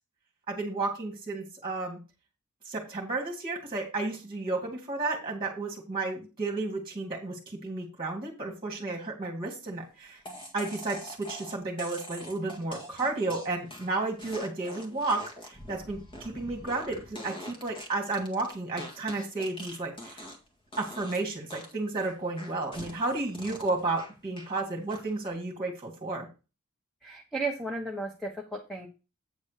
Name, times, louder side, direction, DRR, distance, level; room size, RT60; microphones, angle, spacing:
voice 1, 0.5-2.0 2.6-10.2 10.5-20.2 20.8-26.3, right 2 dB, 20° right, 1 dB, 2.1 m, -32 dB
sound 1, 10.3-20.5 20.7-21.2 21.5-24.5 24.9-25.3, equal, 25° left, 1.8 m, -44 dB
voice 2, 27.0-28.9, right 2 dB, ahead, 0 dB, 1.1 m, -34 dB
8.7 x 4.1 x 6.6 m, 0.30 s
head